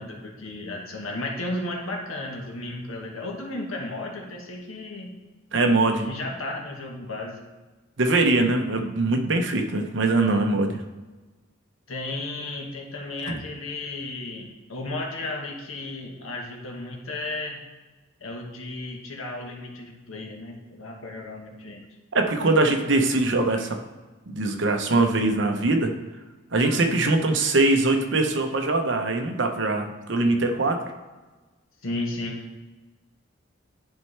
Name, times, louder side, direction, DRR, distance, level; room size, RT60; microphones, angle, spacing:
voice 1, 0.0-5.1 6.0-7.4 11.9-17.6 18.2-21.8 31.8-32.4, left 2 dB, 85° left, 1 dB, 1.3 m, -34 dB
voice 2, 5.5-6.1 8.0-10.8 13.3-13.4 22.1-23.8 24.3-25.9 26.5-30.8, right 2 dB, 60° right, 4 dB, 0.8 m, -22 dB
10.5 x 4.4 x 3.3 m, 1.2 s
head